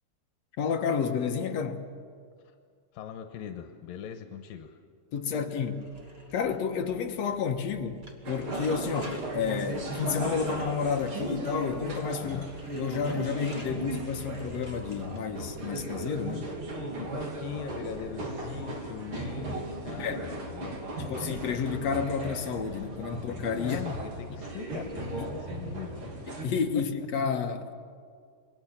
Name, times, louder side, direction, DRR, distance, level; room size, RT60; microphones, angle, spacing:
voice 1, 0.6-1.8 5.1-5.8 6.3-12.4 12.7-16.5 20.0-20.2 21.0-23.8 26.3-27.7, left 6 dB, 60° left, 4 dB, 2.2 m, -30 dB
voice 2, 2.9-4.8 5.3-5.4 12.2-12.5 17.0-21.1 23.6-26.1, left 8 dB, 85° left, 6 dB, 2.8 m, -41 dB
sound 1, 5.7-15.4, equal, 20° right, 1.9 m, -48 dB
sound 2, 8.2-26.5, right 2 dB, 40° right, 3.4 m, -37 dB
28.0 x 22.0 x 7.4 m, 2.2 s
omnidirectional pair, 4.0 m